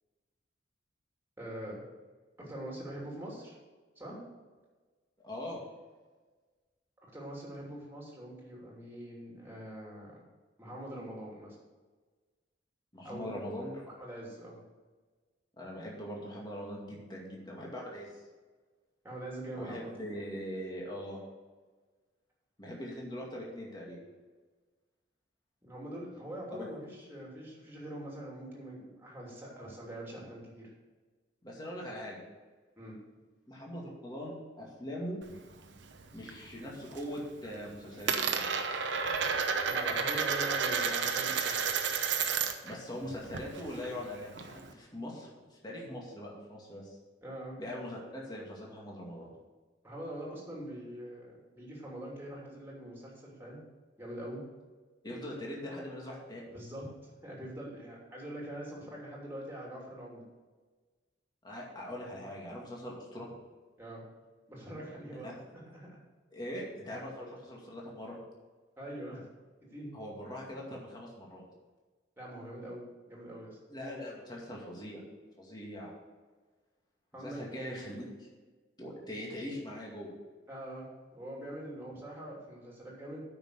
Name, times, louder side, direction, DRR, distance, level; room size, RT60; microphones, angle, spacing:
voice 1, 1.4-1.8 2.4-3.6 3.9-4.2 7.0-10.2 10.6-11.6 13.0-13.3 13.9-14.6 19.0-19.9 25.6-30.7 32.8-33.0 39.7-41.6 47.2-47.6 49.8-53.6 54.0-54.4 56.5-60.2 63.8-64.0 64.5-66.0 67.2-67.3 68.8-69.3 69.7-69.9 72.2-73.6 77.1-77.4 80.5-83.2, right 1 dB, 15° right, -3 dB, 2.9 m, -43 dB
voice 2, 5.2-5.6 12.9-13.9 15.6-18.2 19.5-21.2 22.6-24.0 26.6-26.7 31.4-32.2 33.5-35.2 36.1-38.5 42.6-47.0 47.6-49.3 55.0-56.5 61.4-63.3 65.2-65.4 66.3-68.2 69.9-71.4 73.7-75.0 75.4-75.9 77.2-78.3 78.8-80.1, equal, 20° left, -3 dB, 2.2 m, -41 dB
Coin (dropping), 35.2-36.4 36.7-37.2 37.4-42.7 43.0-44.7, right 6 dB, 75° right, 0.9 m, -32 dB
9.0 x 6.0 x 6.6 m, 1.4 s
head